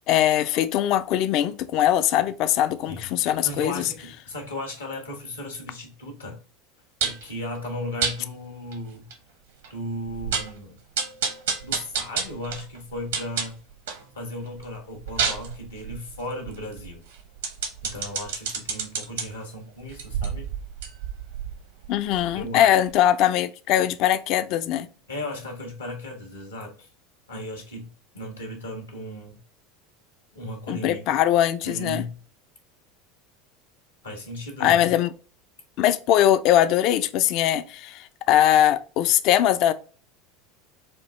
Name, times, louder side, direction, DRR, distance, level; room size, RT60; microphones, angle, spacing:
voice 1, 0.1-3.9 21.9-24.9 30.7-32.0 34.6-35.1 35.8-39.7, left 11 dB, 50° left, 0.4 m, -21 dB
voice 2, 2.9-6.4 7.0-9.1 9.7-10.8 11.6-13.6 14.1-17.0 17.8-20.5 22.3-22.7 25.1-26.9 27.3-27.9 28.1-29.4 30.3-31.1 31.6-32.2 34.0-34.9, left 1 dB, 80° left, 1.2 m, -36 dB
sound 1, 7.0-7.3 8.0-8.2 8.7-8.8 9.1-9.2 9.6-9.7 10.1-10.6 11.0-14.1 14.5-19.2 19.9-22.6 22.9-23.0, right 6 dB, 70° right, 0.8 m, -30 dB
4.4 x 2.4 x 3.1 m
figure-of-eight pair, 75°, 0 cm